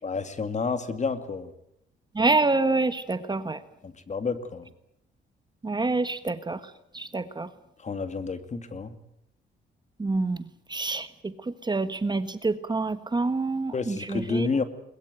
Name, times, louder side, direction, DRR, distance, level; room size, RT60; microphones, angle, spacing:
voice 1, 0.0-1.5 3.8-4.7 7.8-9.0 13.7-14.6, left 4 dB, 35° left, 10 dB, 2.3 m, -30 dB
voice 2, 2.1-3.6 5.6-6.6 6.9-7.5 10.0-14.5, right 3 dB, 20° right, 12 dB, 1.3 m, -27 dB
21.5 x 21.5 x 9.1 m, 0.77 s
cardioid pair, 90°, 20 cm